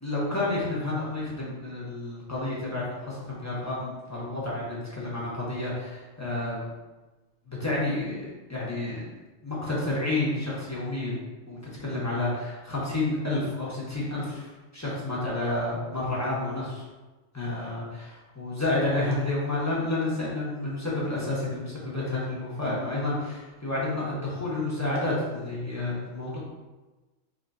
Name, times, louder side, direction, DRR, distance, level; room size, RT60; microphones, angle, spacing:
voice 1, 0.0-6.7 7.5-9.1 9.4-11.2 11.5-14.5 14.7-16.8 17.3-26.4, left 2 dB, 15° left, -7 dB, 0.9 m, -30 dB
4.5 x 3.1 x 2.6 m, 1.2 s
omnidirectional pair, 1.3 m